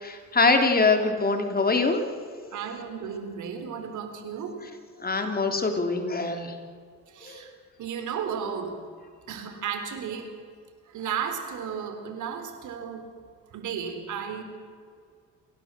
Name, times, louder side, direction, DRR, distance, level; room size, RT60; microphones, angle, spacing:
voice 1, 0.0-2.0 5.0-6.5 7.3-7.4, left 3 dB, 30° left, 5 dB, 3.5 m, -23 dB
voice 2, 2.5-4.6 7.1-7.5 7.8-8.8 9.3-10.3 10.9-13.1 13.5-14.4, right 7 dB, 75° right, 7 dB, 3.9 m, -34 dB
28.0 x 17.0 x 7.6 m, 2.1 s
cardioid pair, 90°, 30 cm